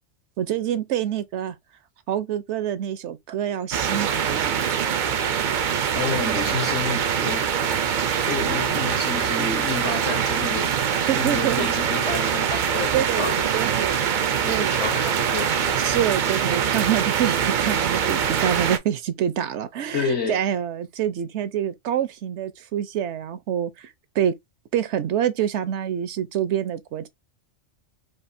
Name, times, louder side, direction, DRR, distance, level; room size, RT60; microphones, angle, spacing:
voice 1, 0.4-1.6 2.1-4.5 11.1-11.7 12.9-13.9 14.5-14.8 15.8-24.3 24.7-27.1, right 10 dB, 75° right, 0.9 m, -26 dB
sound 1, 3.7-18.8, right 8 dB, 60° right, 0.5 m, -23 dB
voice 2, 5.9-7.5 8.1-10.9 11.2-13.5 14.4-15.8 19.9-20.4, left 5 dB, 65° left, 1.4 m, -30 dB
4.8 x 2.5 x 2.6 m
omnidirectional pair, 1.2 m